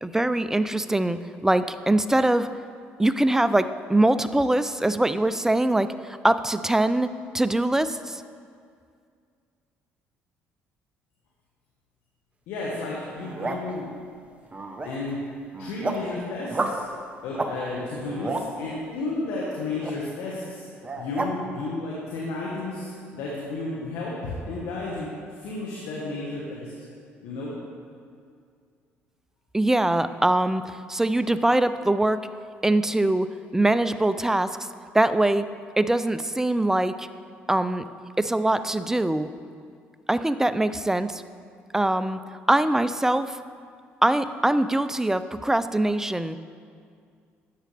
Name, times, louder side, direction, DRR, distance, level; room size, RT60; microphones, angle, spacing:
voice 1, 0.0-2.5 3.0-7.1 7.3-8.2 29.5-32.3 32.6-34.6 34.9-35.5 35.8-37.1 37.5-37.8 38.2-39.3 40.1-41.2 41.7-42.2 42.5-43.4 44.0-46.4, right 1 dB, 10° right, 12 dB, 0.4 m, -23 dB
voice 2, 12.5-13.9 14.8-15.3 15.6-16.8 17.2-20.7 20.9-25.1 25.4-26.7 27.2-27.5, left 2 dB, 80° left, -5 dB, 1.5 m, -32 dB
sound 1, 13.1-13.7 14.4-15.1 15.5-16.1 16.5-16.8 17.3-17.5 17.9-18.5 19.8-19.9 20.8-21.3, right 2 dB, 25° right, 0.9 m, -30 dB
11.5 x 7.5 x 3.4 m, 2.2 s
supercardioid pair, 70°, 5 cm